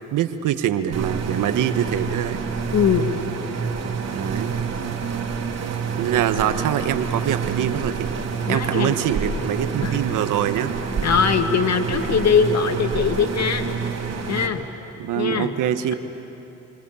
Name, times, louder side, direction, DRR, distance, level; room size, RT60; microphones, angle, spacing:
voice 1, 0.1-2.4 4.1-4.6 6.0-8.1 8.5-10.7 15.0-15.9, right 10 dB, 75° right, 9 dB, 1.4 m, -24 dB
sound 1, 0.9-14.5, right 6 dB, 55° right, 3.4 m, -28 dB
voice 2, 2.7-3.1 8.5-8.9 9.8-10.0 11.0-13.7 14.3-14.7 15.2-15.6, left 6 dB, 60° left, 7 dB, 2.0 m, -21 dB
29.0 x 27.0 x 7.1 m, 2.9 s
supercardioid pair, 65°, 31 cm